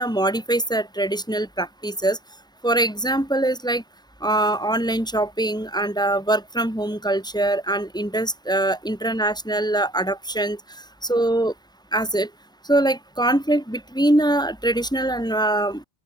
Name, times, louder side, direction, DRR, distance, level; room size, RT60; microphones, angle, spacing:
voice 1, 0.0-2.2 2.6-3.8 4.2-10.6 11.0-11.5 11.9-12.3 12.7-15.8, right 1 dB, ahead, 1.5 m, -23 dB
open air
omnidirectional pair, 1.9 m